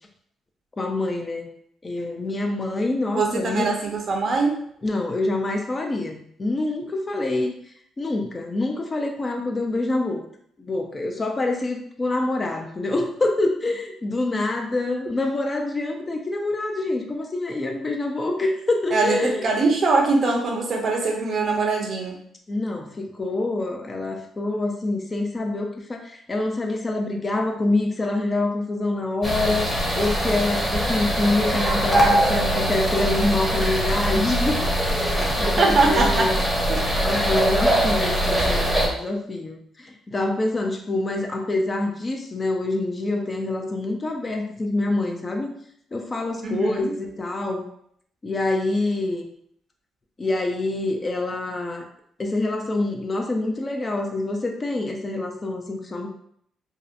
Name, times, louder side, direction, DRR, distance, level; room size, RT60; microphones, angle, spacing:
voice 1, 0.8-1.5 1.8-3.7 4.8-7.6 8.0-10.2 10.6-19.5 22.5-29.7 29.9-36.4 37.0-45.5 45.9-47.7 48.2-49.3 50.2-51.8 52.2-56.1, left 2 dB, 30° left, 3 dB, 0.4 m, -26 dB
voice 2, 3.1-4.5 18.9-22.1 35.6-36.3 36.7-36.8 46.4-46.9, right 3 dB, 50° right, 1 dB, 0.6 m, -22 dB
sound 1, 29.2-38.9, equal, ahead, 0.7 m, -22 dB
2.7 x 2.1 x 2.4 m, 0.67 s
cardioid pair, 90°, 0 cm